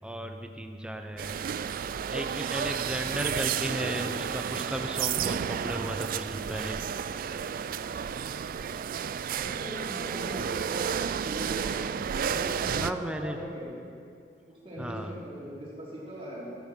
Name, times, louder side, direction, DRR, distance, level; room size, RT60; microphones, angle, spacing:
voice 1, 0.0-1.5 2.1-6.8 12.7-13.4 14.8-15.2, right 1 dB, 5° right, 5 dB, 0.6 m, -35 dB
sound 1, 1.2-12.9, right 7 dB, 55° right, 0.3 m, -32 dB
voice 2, 3.5-3.9 9.3-11.8 12.2-13.7 14.4-16.6, equal, 35° right, -6 dB, 3.3 m, -40 dB
13.0 x 11.0 x 4.4 m, 2.3 s
head